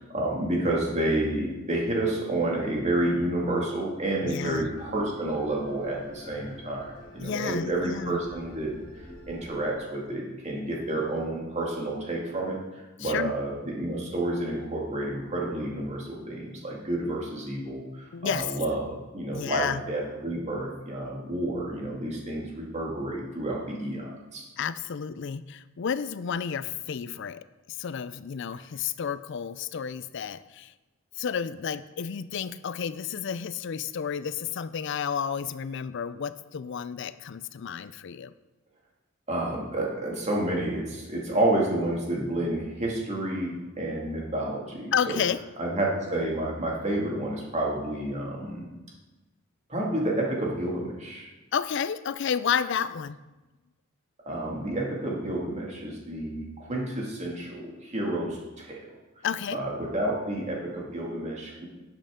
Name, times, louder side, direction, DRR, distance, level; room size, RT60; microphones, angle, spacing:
voice 1, 0.1-8.7 9.3-24.4 39.3-45.2 45.6-48.7 49.7-51.3 54.3-58.8 59.5-61.7, right 1 dB, 35° right, -2 dB, 2.1 m, -30 dB
sound 1, 4.0-9.6, equal, 20° left, 2.7 m, -47 dB
voice 2, 4.2-4.7 7.2-8.2 13.0-13.4 18.1-18.5 19.3-19.8 24.6-30.7 31.2-38.3 44.9-45.4 51.5-53.2 59.2-59.6, left 7 dB, 60° left, 15 dB, 0.4 m, -31 dB
12.0 x 7.8 x 3.6 m, 1.1 s
head